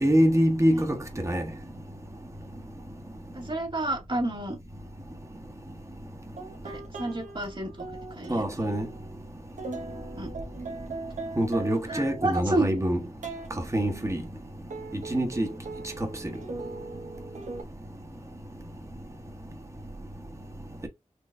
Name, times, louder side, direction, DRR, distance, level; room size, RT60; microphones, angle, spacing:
voice 1, 0.0-1.5 8.3-8.9 11.4-13.0 13.5-14.2 14.9-15.5 16.0-16.3, equal, 25° right, 1.1 m, -25 dB
voice 2, 3.3-4.6 6.6-8.4 10.2-10.3 11.9-12.7, right 2 dB, 40° right, 2.2 m, -30 dB
sound 1, 6.4-12.5 13.2-13.5 14.7-17.6, right 3 dB, 85° right, 0.9 m, -40 dB
4.6 x 3.0 x 2.6 m
cardioid pair, 45°, 12 cm